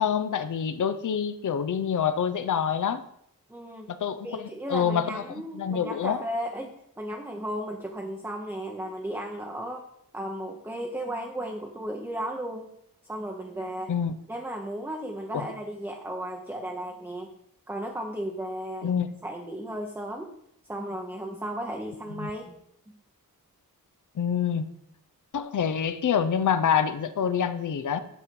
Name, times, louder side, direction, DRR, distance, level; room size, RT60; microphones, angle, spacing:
voice 1, 0.0-3.0 3.9-5.2 5.5-6.2 13.9-14.2 15.3-15.5 18.8-19.1 22.2-22.3 24.2-24.7 25.3-28.0, left 7 dB, 55° left, 11 dB, 0.6 m, -26 dB
voice 2, 3.5-3.9 4.2-9.8 10.1-12.7 13.1-13.9 14.3-17.3 17.7-18.9 19.2-20.3 20.7-22.6, right 1 dB, 5° right, 1 dB, 0.8 m, -35 dB
8.5 x 6.3 x 5.2 m, 0.73 s
wide cardioid pair, 135°, 36 cm